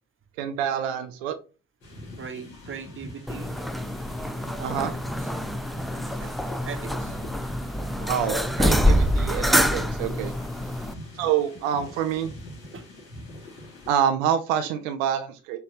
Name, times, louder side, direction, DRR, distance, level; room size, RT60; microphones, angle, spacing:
voice 1, 0.4-1.4 4.6-4.9 8.1-10.3 11.1-12.3 13.9-15.6, right 9 dB, 80° right, 8 dB, 0.5 m, -26 dB
sound 1, 1.8-14.0, left 1 dB, 65° left, 2.6 m, -43 dB
voice 2, 2.1-3.6 4.5-5.3 6.2-6.3 6.6-7.2 8.0-8.5 10.7-10.9 12.7-12.8, right 6 dB, 30° right, 7 dB, 1.0 m, -40 dB
sound 2, 3.3-10.9, equal, ahead, 0.4 m, -26 dB
5.6 x 2.8 x 3.2 m, 0.33 s
hypercardioid pair, 45°, 39 cm